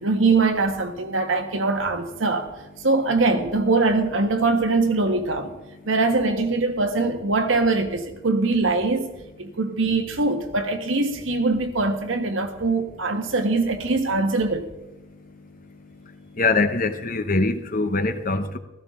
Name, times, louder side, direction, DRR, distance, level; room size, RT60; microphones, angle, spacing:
voice 1, 0.0-2.5 2.8-5.5 5.8-14.7, right 3 dB, 75° right, 1.6 m, -22 dB
voice 2, 16.4-18.6, left 3 dB, 45° left, 1.0 m, -23 dB
16.0 x 14.5 x 3.8 m
head